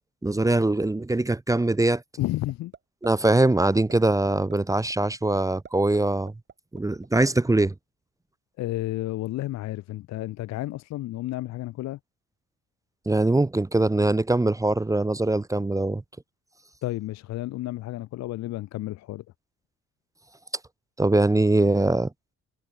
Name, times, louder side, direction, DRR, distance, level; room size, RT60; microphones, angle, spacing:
voice 1, 0.2-2.0 3.0-6.3 6.7-7.7 13.1-16.0 21.0-22.1, right 2 dB, 10° right, 0.7 m, -22 dB
voice 2, 2.2-2.7 8.6-12.0 16.8-19.2, left 16 dB, 65° left, 0.4 m, -31 dB
sound 1, 2.5-2.8 3.0-3.4 3.7-3.9 4.3-4.5 4.9-5.0 5.3-6.0 6.3-7.3, right 6 dB, 35° right, 2.2 m, -45 dB
cardioid pair, 90°, 30 cm